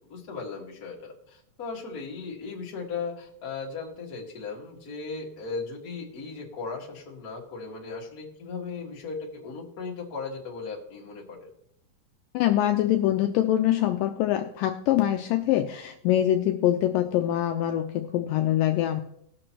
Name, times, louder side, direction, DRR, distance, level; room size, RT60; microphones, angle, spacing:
voice 1, 0.1-11.5, left 4 dB, 35° left, -3 dB, 1.6 m, -37 dB
voice 2, 12.3-19.0, left 12 dB, 80° left, 7 dB, 2.1 m, -24 dB
19.5 x 6.5 x 3.0 m, 0.73 s
omnidirectional pair, 4.2 m